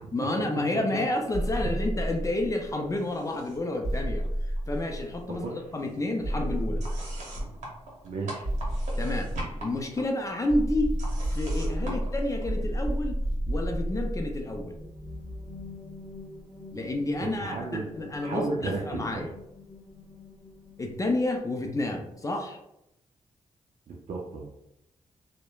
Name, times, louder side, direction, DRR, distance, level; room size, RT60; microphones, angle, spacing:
voice 1, 0.1-4.2 4.7-6.8 9.0-9.3 9.6-11.0 11.3-13.2 13.5-14.8 16.7-19.3 20.8-22.6, left 2 dB, 25° left, 2 dB, 0.4 m, -30 dB
sound 1, 1.3-2.8 3.8-5.4 6.2-7.6 8.4-10.0 10.5-15.8, equal, 40° right, 1.5 m, -31 dB
sound 2, 3.0-3.8 4.0-5.0 5.3-12.9, right 1 dB, 75° right, 0.8 m, -42 dB
voice 2, 8.0-8.5 11.8-12.1 17.2-17.9 18.2-19.2 23.9-24.5, right 3 dB, 60° right, -1 dB, 0.5 m, -34 dB
sound 3, 14.7-22.3, left 2 dB, 15° right, 0.9 m, -47 dB
2.9 x 2.1 x 2.3 m, 0.81 s
cardioid pair, 75°, 12 cm